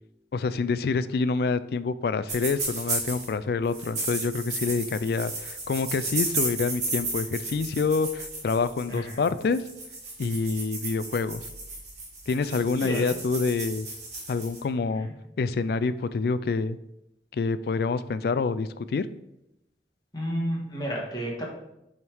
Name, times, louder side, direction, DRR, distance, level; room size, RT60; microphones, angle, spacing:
voice 1, 0.3-9.6 10.2-11.4 12.3-13.9 14.3-15.1 15.4-16.8 17.3-19.1, left 4 dB, 60° left, 14 dB, 0.3 m, -27 dB
sound 1, 2.3-3.3 3.7-14.6, right 2 dB, 40° right, 2.0 m, -33 dB
voice 2, 8.9-9.2 12.8-13.2 14.9-15.1 20.1-21.5, equal, 20° left, -2 dB, 1.5 m, -31 dB
8.3 x 3.6 x 4.6 m, 0.87 s
head